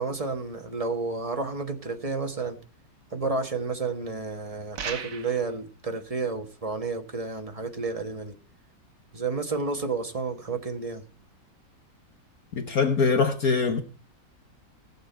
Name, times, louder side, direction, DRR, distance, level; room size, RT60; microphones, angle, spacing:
voice 1, 0.0-2.6 3.1-8.3 9.1-11.0, right 4 dB, 20° right, 1.2 m, -31 dB
sound 1, 4.8-5.5, right 6 dB, 50° right, 1.6 m, -35 dB
voice 2, 12.5-13.8, left 4 dB, 55° left, 1.4 m, -23 dB
18.5 x 7.5 x 4.4 m
omnidirectional pair, 2.0 m